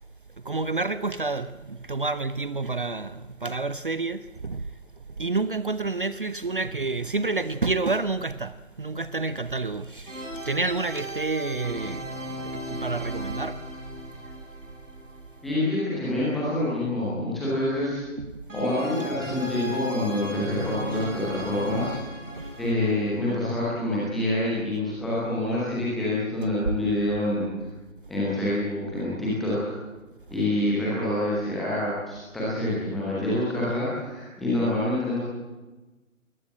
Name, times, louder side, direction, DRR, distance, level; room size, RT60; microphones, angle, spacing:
voice 1, 0.4-13.7 18.2-18.4 19.1-19.2 20.9-21.1 22.3-22.7 26.6-26.7, right 3 dB, 40° right, 0.7 m, -29 dB
sound 1, 10.1-16.0 18.5-24.3, equal, 60° right, 7.1 m, -37 dB
voice 2, 15.4-18.0 18.5-22.0 22.6-27.5 28.1-29.5 30.3-35.2, left 1 dB, ahead, 0.8 m, -26 dB
21.0 x 20.0 x 7.7 m
figure-of-eight pair, 150°, 42 cm